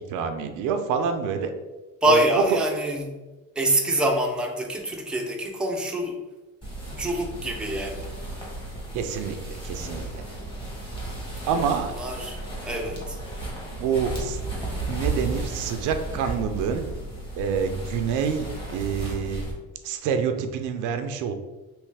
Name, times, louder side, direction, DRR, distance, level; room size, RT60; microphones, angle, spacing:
voice 1, 0.1-1.5 2.1-2.2 8.9-10.2 11.5-11.9 13.7-14.4 14.9-16.8 17.4-19.4 19.8-21.3, right 6 dB, 70° right, 7 dB, 0.5 m, -27 dB
voice 2, 2.0-3.2 3.6-6.2 6.9-8.1 11.4-11.6 12.0-12.4 12.6-13.2, right 1 dB, 5° right, 0 dB, 0.5 m, -25 dB
sound 1, 6.6-19.5, right 2 dB, 15° left, 1.4 m, -34 dB
3.1 x 3.1 x 3.3 m, 1.2 s
cardioid pair, 100°, 31 cm